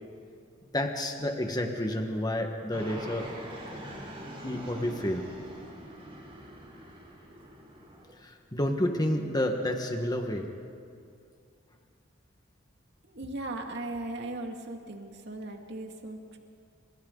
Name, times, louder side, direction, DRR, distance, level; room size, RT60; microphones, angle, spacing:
voice 1, 0.7-3.3 4.4-5.2 8.2-10.5, left 1 dB, 20° left, 3 dB, 1.6 m, -30 dB
Fixed-wing aircraft airplane, 2.7-8.1, right 1 dB, 30° right, 5.3 m, -44 dB
voice 2, 13.1-16.4, right 2 dB, 60° right, 2 dB, 2.4 m, -38 dB
29.5 x 27.0 x 4.0 m, 2.4 s
head